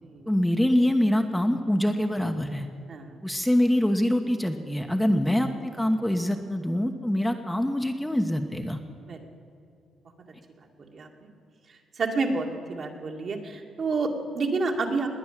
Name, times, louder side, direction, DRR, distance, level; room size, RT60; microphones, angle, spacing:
voice 1, 0.3-2.7 3.2-8.8, left 1 dB, 5° left, 4 dB, 1.1 m, -24 dB
voice 2, 12.0-15.1, right 3 dB, 50° right, 2 dB, 2.3 m, -29 dB
20.0 x 9.2 x 7.4 m, 2.6 s
cardioid pair, 90°, 0 cm